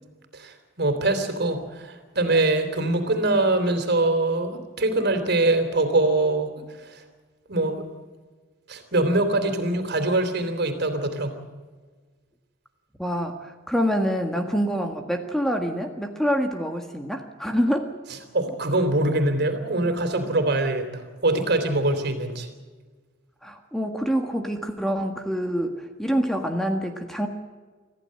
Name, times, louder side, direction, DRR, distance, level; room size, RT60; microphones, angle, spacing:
voice 1, 0.3-6.5 6.8-7.0 7.5-7.9 8.7-11.4 18.3-22.5, right 2 dB, 55° right, 7 dB, 3.5 m, -23 dB
voice 2, 13.0-17.9 23.4-27.3, equal, ahead, 4 dB, 1.6 m, -26 dB
26.0 x 15.0 x 7.7 m, 1.4 s
head